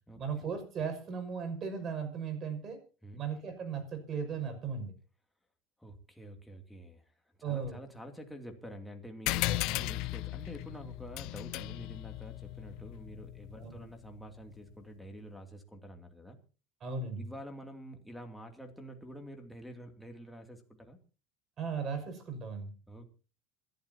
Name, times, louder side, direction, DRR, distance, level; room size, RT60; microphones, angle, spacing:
voice 1, 0.2-2.8 3.2-4.9 7.4-7.8 9.4-9.6 13.6-13.8 16.8-17.2 21.6-22.7, right 6 dB, 35° right, 7 dB, 6.0 m, -37 dB
voice 2, 5.8-7.1 7.4-16.4 17.2-21.0 22.9-23.0, equal, 5° left, 3 dB, 2.7 m, -48 dB
sound 1, 9.3-14.2, left 19 dB, 60° left, 0.7 m, -36 dB
27.5 x 12.0 x 2.9 m, 0.35 s
supercardioid pair, 130°, 0 cm